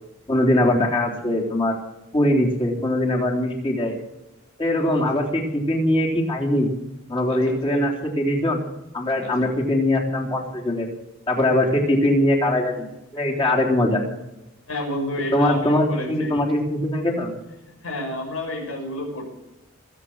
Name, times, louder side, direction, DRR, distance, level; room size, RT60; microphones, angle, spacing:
voice 1, 0.3-1.8 2.1-3.9 4.6-6.7 7.1-8.6 8.9-10.9 11.3-12.9 13.1-14.0 15.3-17.3, left 1 dB, 25° left, -2 dB, 3.6 m, -21 dB
voice 2, 7.3-7.8 9.2-9.5 14.7-16.4 17.7-19.3, left 1 dB, 80° left, 0 dB, 6.3 m, -30 dB
22.5 x 8.3 x 6.3 m, 0.94 s
head